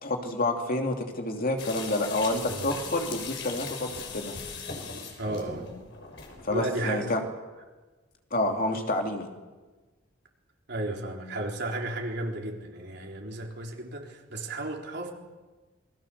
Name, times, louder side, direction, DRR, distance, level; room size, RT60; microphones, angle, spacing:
voice 1, 0.0-4.3 6.4-7.2 8.3-9.3, left 2 dB, 50° left, 2 dB, 3.0 m, -28 dB
sound 1, 1.6-6.6, left 5 dB, 65° left, 6.2 m, -39 dB
voice 2, 5.2-5.7 6.5-7.2 10.7-15.1, right 1 dB, 60° right, 0 dB, 4.0 m, -33 dB
28.0 x 21.5 x 6.9 m, 1.3 s
head